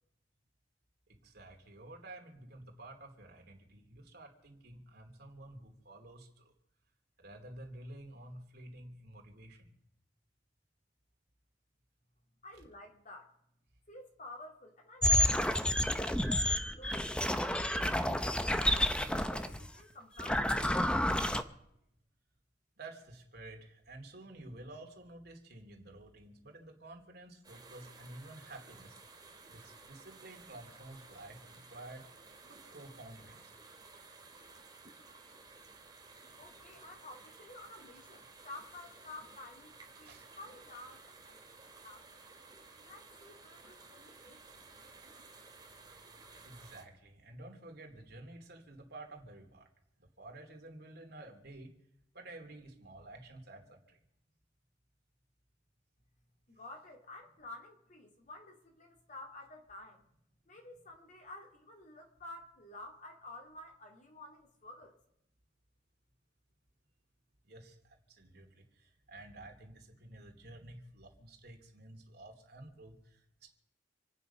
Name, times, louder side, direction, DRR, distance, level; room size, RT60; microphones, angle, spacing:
voice 1, 1.2-6.5 7.2-9.7 22.8-29.0 29.5-32.0 32.5-33.5 40.0-40.3 46.4-49.7 50.2-51.7 52.1-54.0 67.5-73.5, right 2 dB, 55° right, 2 dB, 2.9 m, -51 dB
voice 2, 12.4-13.3 13.9-17.2 17.8-20.6 36.4-41.4 41.7-42.2 42.8-44.7 56.5-60.0 60.5-64.9, left 2 dB, 40° left, 2 dB, 2.6 m, -51 dB
sound 1, 15.0-19.7 20.2-21.4, left 1 dB, 5° left, 0.8 m, -30 dB
sound 2, 27.4-46.8, right 3 dB, 20° right, 2.8 m, -55 dB
27.5 x 9.2 x 5.6 m, 0.76 s
head